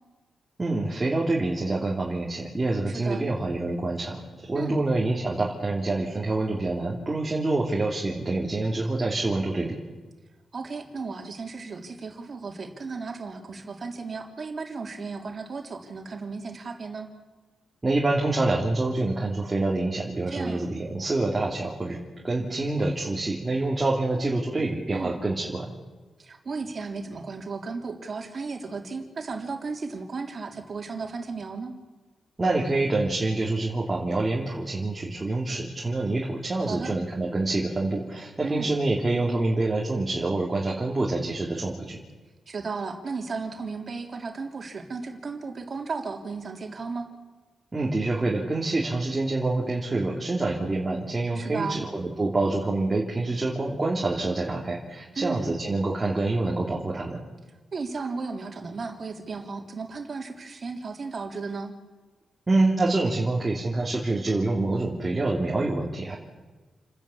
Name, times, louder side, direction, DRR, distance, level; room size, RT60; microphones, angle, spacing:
voice 1, 0.6-9.8 17.8-22.0 22.2-25.7 32.4-42.0 47.7-57.2 62.5-66.1, right 2 dB, 20° right, -3 dB, 3.1 m, -26 dB
voice 2, 2.9-3.3 4.5-4.8 10.5-17.1 20.3-20.7 24.9-25.1 26.2-31.7 36.6-37.0 38.4-38.7 42.5-47.1 51.3-51.9 55.1-55.6 57.7-61.7, right 4 dB, 45° right, 3 dB, 3.4 m, -34 dB
29.5 x 10.5 x 8.6 m, 1.3 s
cardioid pair, 90°, 0 cm